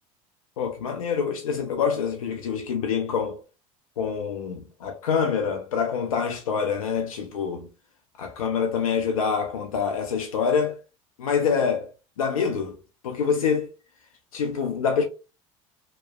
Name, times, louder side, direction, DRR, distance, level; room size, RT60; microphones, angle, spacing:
voice 1, 0.6-3.4 4.0-7.7 8.2-10.8 11.2-11.9 12.2-12.8 13.0-13.7 14.3-15.0, left 6 dB, 85° left, 0.5 m, -26 dB
2.8 x 2.2 x 2.2 m
hypercardioid pair, 70°, 17 cm